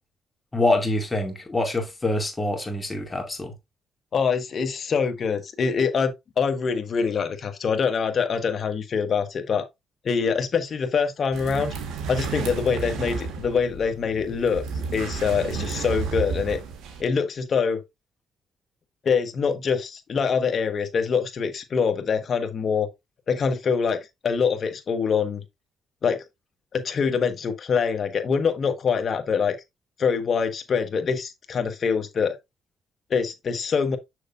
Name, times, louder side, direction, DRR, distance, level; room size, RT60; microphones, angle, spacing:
voice 1, 0.5-3.5, left 2 dB, 20° left, 2.4 m, -25 dB
voice 2, 4.1-9.7 10.0-11.7 12.1-14.6 14.9-16.6 17.0-17.8 19.0-22.9 23.3-25.4 26.0-26.2 26.7-29.5 30.0-32.4 33.1-34.0, left 6 dB, 50° left, 1.3 m, -24 dB
sound 1, 11.3-17.0, right 5 dB, 90° right, 1.5 m, -32 dB
6.6 x 6.5 x 2.5 m
cardioid pair, 90°, 0 cm